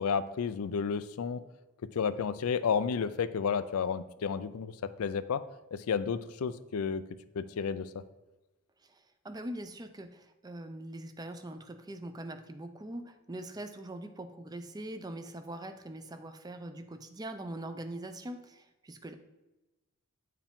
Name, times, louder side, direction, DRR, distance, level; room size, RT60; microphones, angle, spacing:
voice 1, 0.0-1.4 1.9-5.4 5.7-7.0 7.3-8.0, left 6 dB, 85° left, 13 dB, 0.4 m, -31 dB
voice 2, 8.8-19.1, right 1 dB, 20° right, 9 dB, 0.4 m, -42 dB
9.0 x 4.7 x 3.6 m, 1.1 s
head